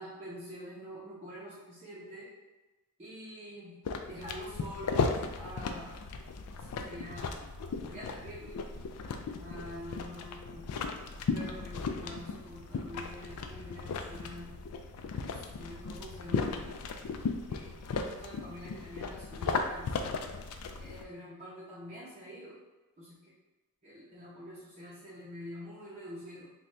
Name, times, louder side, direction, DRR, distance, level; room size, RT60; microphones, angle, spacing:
voice 1, 0.0-2.3 3.0-3.8 4.1-6.0 6.6-7.5 7.9-8.6 9.4-10.7 11.1-14.5 15.2-16.7 17.5-20.0 20.8-22.6 23.0-23.3 23.8-26.5, equal, 30° right, -8 dB, 0.7 m, -46 dB
sound 1, 3.8-21.0, left 4 dB, 85° left, 0.4 m, -36 dB
4.0 x 2.3 x 3.2 m, 1.2 s
head